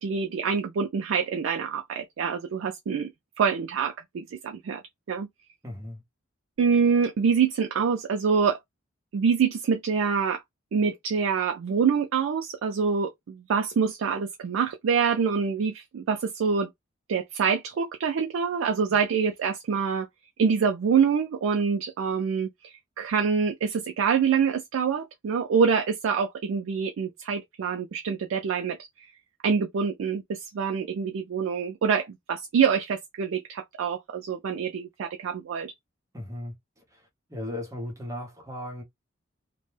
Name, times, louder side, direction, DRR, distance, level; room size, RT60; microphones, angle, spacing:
voice 1, 0.0-3.1 3.4-4.8 5.1-5.3 6.6-8.6 9.1-10.4 10.7-16.7 17.1-20.1 20.4-28.8 29.4-35.7, right 6 dB, 80° right, 0.4 m, -26 dB
voice 2, 5.6-6.0 18.9-19.0 36.1-36.5 36.9-37.0 37.3-38.8, left 1 dB, 15° right, 0.7 m, -36 dB
2.1 x 2.1 x 3.1 m
head